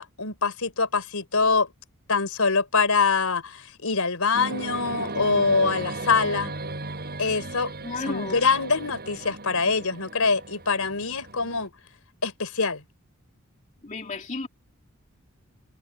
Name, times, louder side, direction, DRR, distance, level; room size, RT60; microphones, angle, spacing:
voice 1, 0.0-1.7 2.1-6.6 7.2-7.7 8.0-11.7 12.2-12.8, left 4 dB, 85° left, 3.8 m, -24 dB
sound 1, 4.3-11.7, right 2 dB, 45° right, 7.4 m, -36 dB
voice 2, 7.8-8.4 13.8-14.5, left 3 dB, 35° left, 2.4 m, -32 dB
head